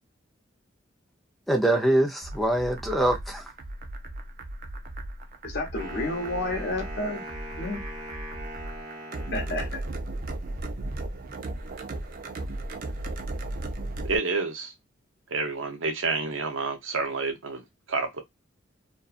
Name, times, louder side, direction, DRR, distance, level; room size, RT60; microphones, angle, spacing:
voice 1, 1.5-3.5, right 1 dB, ahead, 0.6 m, -24 dB
sound 1, 2.2-14.2, right 2 dB, 50° right, 0.5 m, -36 dB
voice 2, 5.4-7.2 7.6-7.8 9.3-9.7, left 2 dB, 55° left, 0.9 m, -30 dB
Wind instrument woodwind instrument, 5.8-10.0, right 1 dB, 25° right, 1.3 m, -41 dB
voice 3, 14.0-14.7 15.3-18.2, right 4 dB, 80° right, 0.7 m, -29 dB
2.6 x 2.3 x 2.3 m
head